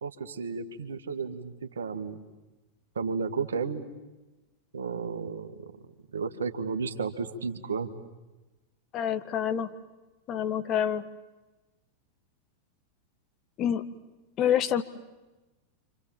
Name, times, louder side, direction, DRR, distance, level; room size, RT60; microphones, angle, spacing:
voice 1, 0.0-2.2 3.0-3.9 4.7-5.5 6.1-7.9, right 5 dB, 70° right, 8 dB, 2.0 m, -33 dB
voice 2, 8.9-9.7 10.3-11.0 13.6-13.8 14.4-14.8, left 9 dB, 35° left, 9 dB, 1.4 m, -27 dB
30.0 x 26.0 x 7.7 m, 1.1 s
figure-of-eight pair, 90°, 0 cm